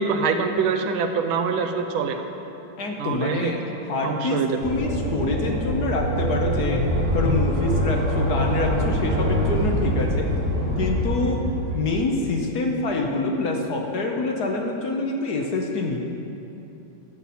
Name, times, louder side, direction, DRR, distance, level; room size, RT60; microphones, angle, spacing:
voice 1, 0.0-2.2 3.0-3.5 4.0-4.6, right 5 dB, 80° right, 6 dB, 1.5 m, -24 dB
voice 2, 2.8-3.6 3.9-6.8 7.1-10.3 10.8-11.4 11.7-16.0, left 3 dB, 60° left, 1 dB, 1.2 m, -26 dB
sound 1, 4.6-12.0, equal, 40° right, 1.6 m, -24 dB
15.0 x 7.7 x 4.2 m, 2.9 s
omnidirectional pair, 2.3 m